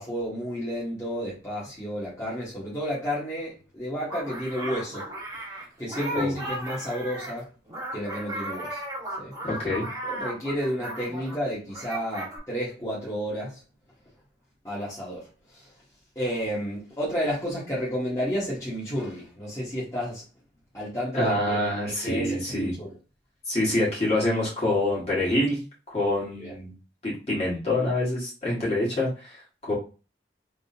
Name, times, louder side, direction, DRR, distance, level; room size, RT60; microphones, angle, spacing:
voice 1, 0.0-5.1 5.8-7.5 7.9-8.8 9.2-9.3 10.0-13.6 14.6-15.7 16.1-20.2 20.7-22.9 26.4-26.5, equal, 15° left, 1.4 m, -31 dB
sound 1, 4.1-11.4 11.7-12.4, right 1 dB, 20° right, 1.2 m, -36 dB
voice 2, 9.4-9.8 21.1-22.7 23.5-25.6 25.9-26.7 27.0-29.7, left 1 dB, 35° left, 1.8 m, -26 dB
3.6 x 3.1 x 2.7 m
head